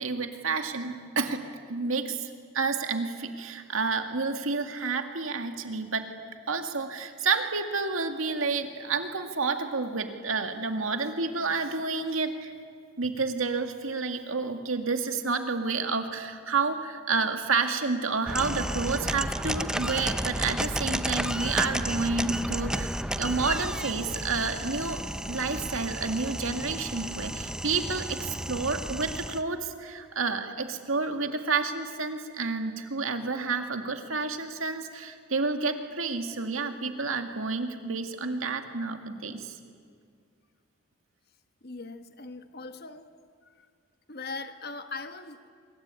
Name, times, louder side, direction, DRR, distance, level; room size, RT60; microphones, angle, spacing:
voice 1, 0.0-1.4 1.7-2.3 2.5-6.1 6.5-12.5 13.0-22.9 23.2-25.0 25.3-39.6, right 4 dB, 85° right, 6 dB, 2.1 m, -30 dB
sound 1, 18.3-29.4, right 1 dB, 5° right, 0.6 m, -32 dB
voice 2, 41.6-43.1 43.4-43.7 44.1-45.5, left 3 dB, 50° left, 8 dB, 1.2 m, -40 dB
24.5 x 23.0 x 9.0 m, 2.2 s
head